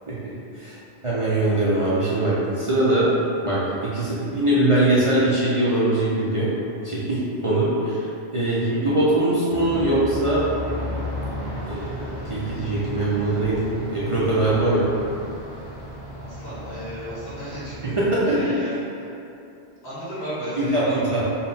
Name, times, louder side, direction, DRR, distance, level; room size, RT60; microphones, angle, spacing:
voice 1, 0.1-0.8 1.0-3.1 3.4-6.5 6.8-10.5 11.7-12.0 12.3-13.6 13.9-14.9 18.0-18.6 20.6-21.2, right 1 dB, 35° right, -9 dB, 0.6 m, -22 dB
voice 2, 8.5-8.9 16.1-18.0 18.3-18.8 19.8-21.2, right 1 dB, 80° left, -11 dB, 2.1 m, -34 dB
Aircraft, 9.5-18.5, equal, 25° left, 1.1 m, -34 dB
5.7 x 2.2 x 4.0 m, 2.8 s
omnidirectional pair, 1.1 m